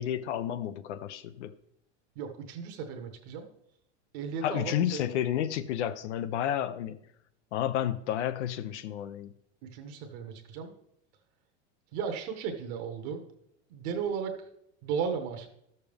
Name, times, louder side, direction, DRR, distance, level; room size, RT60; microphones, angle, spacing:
voice 1, 0.0-1.5 4.4-7.0 7.5-9.3, left 10 dB, 80° left, 0.7 m, -31 dB
voice 2, 2.1-3.5 4.1-5.0 9.6-10.7 11.9-13.2 13.7-14.5 14.8-15.5, right 6 dB, 35° right, 0.9 m, -35 dB
13.0 x 6.7 x 3.4 m
supercardioid pair, 180°, 34 cm